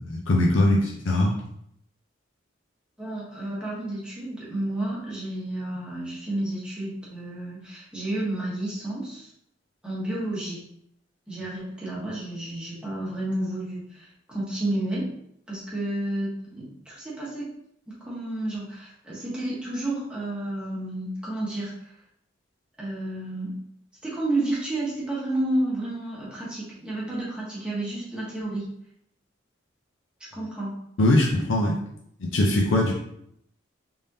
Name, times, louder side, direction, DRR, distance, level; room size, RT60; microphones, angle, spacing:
voice 1, 0.0-1.3 31.0-31.7 32.2-32.9, left 1 dB, 85° left, -2 dB, 0.6 m, -21 dB
voice 2, 3.0-9.3 9.8-10.6 11.3-15.1 15.5-17.5 17.9-21.9 22.8-23.5 24.0-28.7 30.3-30.8, right 1 dB, 5° right, -8 dB, 1.2 m, -31 dB
3.6 x 3.4 x 2.8 m, 0.72 s
head